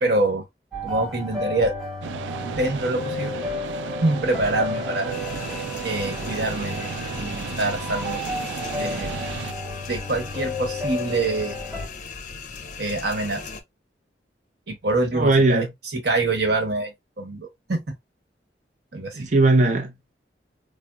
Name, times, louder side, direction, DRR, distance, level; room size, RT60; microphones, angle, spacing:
voice 1, 0.0-0.4 0.8-1.7 2.4-3.4 4.0-5.1 5.8-8.2 8.8-9.2 9.9-11.6 12.8-13.4 14.7-15.6 15.9-18.0 18.9-19.3, right 2 dB, 65° right, 1.1 m, -25 dB
sound 1, 0.7-11.9, left 2 dB, ahead, 0.9 m, -32 dB
sound 2, 2.0-9.5, right 7 dB, 85° right, 0.3 m, -34 dB
sound 3, 5.1-13.6, left 4 dB, 45° left, 0.5 m, -38 dB
voice 2, 15.1-15.7 19.2-20.1, right 2 dB, 45° right, 0.6 m, -19 dB
4.1 x 2.0 x 2.2 m
head